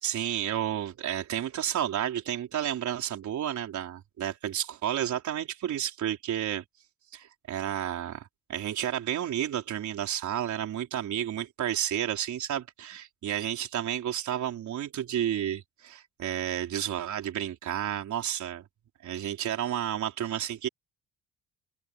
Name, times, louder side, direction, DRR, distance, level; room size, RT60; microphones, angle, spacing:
voice 1, 0.0-6.6 7.1-18.6 19.0-20.7, right 10 dB, 70° right, 4.0 m, -31 dB
cardioid pair, 90°, 30 cm